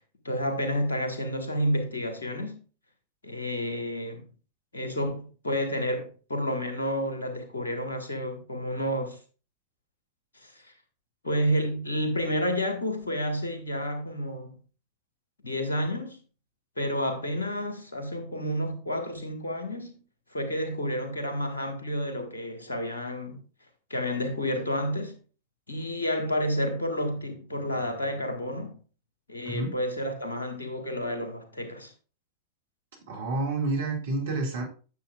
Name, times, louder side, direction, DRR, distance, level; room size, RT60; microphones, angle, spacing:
voice 1, 0.2-2.6 3.2-4.3 4.7-9.2 10.3-10.7 11.2-14.6 15.4-16.2 16.8-19.9 20.3-23.4 23.9-25.2 25.7-28.8 29.3-31.9, equal, 75° left, 1.6 m, -30 dB
voice 2, 33.1-34.6, right 2 dB, 60° right, 2.2 m, -29 dB
9.5 x 6.9 x 2.4 m
figure-of-eight pair, 90°, 0 cm